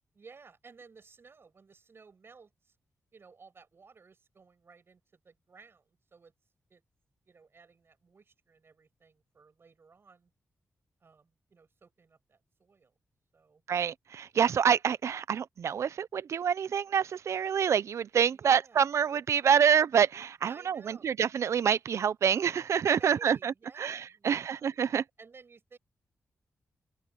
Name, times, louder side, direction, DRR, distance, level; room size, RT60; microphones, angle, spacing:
voice 1, 0.1-2.7 3.1-6.3 6.7-6.8 7.2-10.3 11.0-13.0 13.3-13.6 14.2-14.4 18.3-18.9 20.4-21.1 22.9-24.7 25.2-25.8, right 5 dB, 50° right, 8.0 m, -56 dB
voice 2, 13.7-25.0, right 7 dB, 75° right, 0.6 m, -27 dB
cardioid pair, 75°, 5 cm